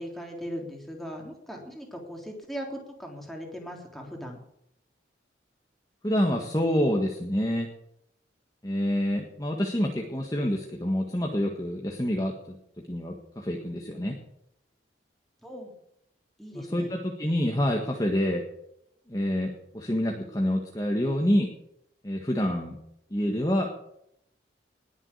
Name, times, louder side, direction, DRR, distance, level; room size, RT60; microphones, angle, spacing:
voice 1, 0.0-4.4 14.1-14.2 15.4-15.7 16.4-16.9, equal, ahead, 0 dB, 3.4 m, -39 dB
voice 2, 6.0-7.7 8.6-12.6 12.9-14.1 16.5-18.4 19.1-21.5 22.0-22.8 23.1-23.7, equal, 20° left, 1 dB, 1.7 m, -27 dB
20.5 x 7.4 x 8.5 m, 0.77 s
head